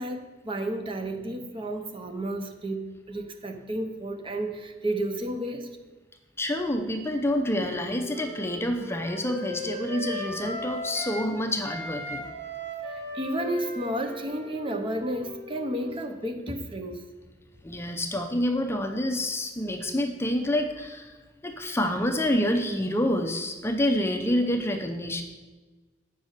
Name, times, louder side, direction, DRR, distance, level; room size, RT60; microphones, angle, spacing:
voice 1, 0.0-5.7 12.8-17.1, right 1 dB, 30° right, 6 dB, 0.8 m, -32 dB
voice 2, 6.4-12.3 17.6-21.1 21.4-25.2, left 1 dB, 15° left, 4 dB, 0.6 m, -27 dB
Wind instrument woodwind instrument, 6.9-11.3 11.6-16.1, left 1 dB, 85° right, 2.1 m, -38 dB
8.0 x 5.4 x 6.4 m, 1.3 s
head